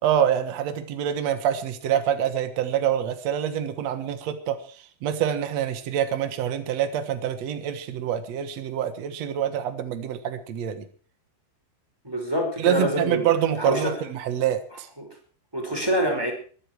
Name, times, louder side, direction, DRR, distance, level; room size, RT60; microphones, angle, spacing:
voice 1, 0.0-4.6 5.0-10.8 12.6-14.9, right 10 dB, 80° right, 9 dB, 1.5 m, -26 dB
voice 2, 12.0-13.3 13.6-13.9 15.0-15.1 15.5-16.3, equal, 5° right, 2 dB, 4.6 m, -25 dB
23.0 x 10.0 x 4.6 m, 0.43 s
omnidirectional pair, 5.3 m